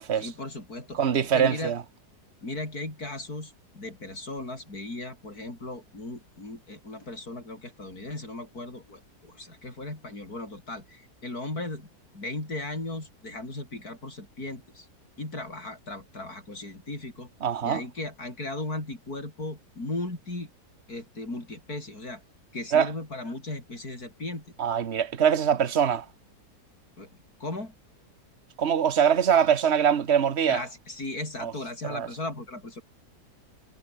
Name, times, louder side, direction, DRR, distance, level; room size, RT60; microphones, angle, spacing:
voice 1, 0.2-1.0 1.3-1.7 2.4-11.9 12.1-14.9 15.2-17.3 17.6-20.5 20.9-22.2 22.5-24.5 27.0-27.1 27.4-27.7 30.5-32.8, left 2 dB, 65° left, 7.2 m, -37 dB
voice 2, 0.9-1.8 17.4-17.8 22.7-22.9 24.6-26.0 28.6-30.6 31.4-31.5 31.9-32.1, right 8 dB, 45° right, 1.4 m, -23 dB
omnidirectional pair, 1.7 m